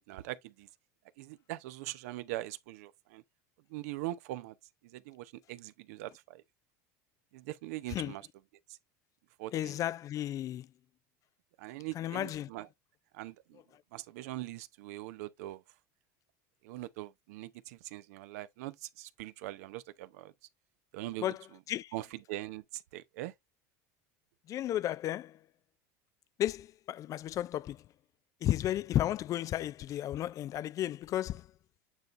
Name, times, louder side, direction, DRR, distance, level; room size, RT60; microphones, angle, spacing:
voice 1, 0.1-0.7 1.2-3.2 3.7-4.5 4.8-6.4 7.3-8.3 8.7-8.8 9.4-9.8 11.6-12.7 13.1-13.6 13.9-15.6 16.6-20.3 20.9-21.3 21.9-23.3, right 16 dB, 75° right, 0.7 m, -42 dB
voice 2, 9.5-10.7 12.0-12.5 21.2-21.4 21.7-21.9 24.5-25.4 26.4-27.8 28.4-31.5, left 12 dB, 40° left, 0.3 m, -33 dB
9.0 x 3.9 x 3.1 m
supercardioid pair, 100°, 8 cm